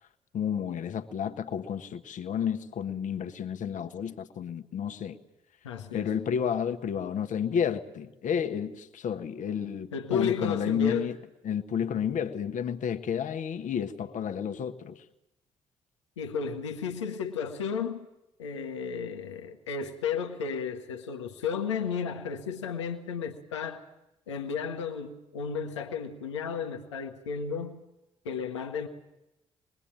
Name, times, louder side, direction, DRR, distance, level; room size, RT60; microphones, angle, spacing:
voice 1, 0.3-5.2 5.9-11.2 11.4-15.0, left 8 dB, 60° left, 1.5 m, -31 dB
voice 2, 5.6-6.1 9.9-11.1 16.2-18.1 18.4-23.8 24.3-27.8 28.2-28.9, left 6 dB, 90° left, 1.4 m, -33 dB
25.0 x 21.0 x 8.9 m
hypercardioid pair, 40°, 15 cm